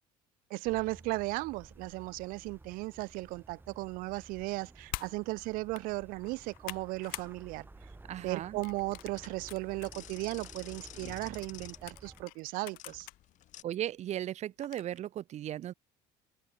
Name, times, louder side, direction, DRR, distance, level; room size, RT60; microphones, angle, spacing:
voice 1, 0.5-7.7 8.2-13.1, right 23 dB, 75° right, 0.5 m, -36 dB
sound 1, 0.6-12.2, right 2 dB, 15° right, 4.9 m, -54 dB
sound 2, 4.9-5.1 5.6-5.8 6.3-7.3 7.7-8.0 8.6-9.9 10.4-10.5 11.4-13.2 13.7-13.8 14.6-15.0, left 24 dB, 80° left, 1.5 m, -45 dB
voice 2, 8.1-8.6 13.6-15.7, right 12 dB, 50° right, 0.9 m, -36 dB
sound 3, 8.5-13.6, left 13 dB, 60° left, 1.7 m, -51 dB
cardioid pair, 100°, 15 cm